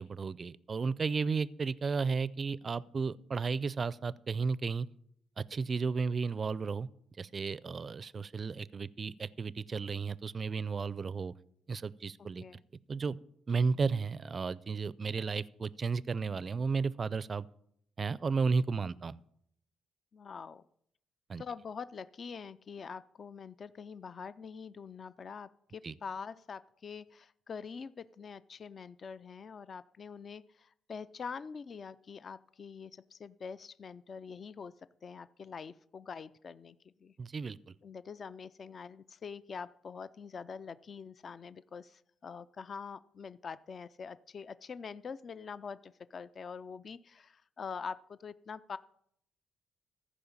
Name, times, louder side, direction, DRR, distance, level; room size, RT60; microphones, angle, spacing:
voice 1, 0.0-4.9 5.4-6.9 7.2-11.3 11.7-12.4 12.9-13.2 13.5-17.5 18.0-19.2 21.3-21.4 25.8-25.9 37.2-37.7, right 5 dB, 40° right, 20 dB, 0.4 m, -33 dB
voice 2, 20.1-20.6 21.4-34.7 35.0-37.2 37.8-48.8, left 5 dB, 45° left, 16 dB, 0.3 m, -45 dB
14.5 x 5.1 x 7.1 m, 0.71 s
cardioid pair, 90°, 0 cm